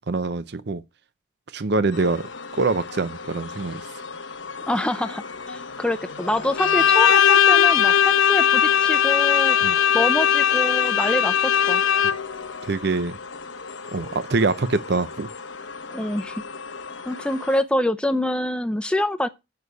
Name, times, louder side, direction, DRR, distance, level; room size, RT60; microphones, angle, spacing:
voice 1, 0.1-0.8 1.5-2.3 2.6-3.8 9.6-9.8 12.0-12.1 12.7-13.2 13.9-15.3, right 3 dB, 55° right, 0.6 m, -24 dB
sound 1, 1.9-17.6, left 4 dB, 70° left, 1.0 m, -37 dB
voice 2, 4.7-9.6 9.9-11.8 15.9-16.3 17.1-19.3, left 1 dB, 5° left, 0.6 m, -26 dB
Bowed string instrument, 6.6-12.4, left 9 dB, 90° left, 0.6 m, -18 dB
7.3 x 6.2 x 6.7 m
head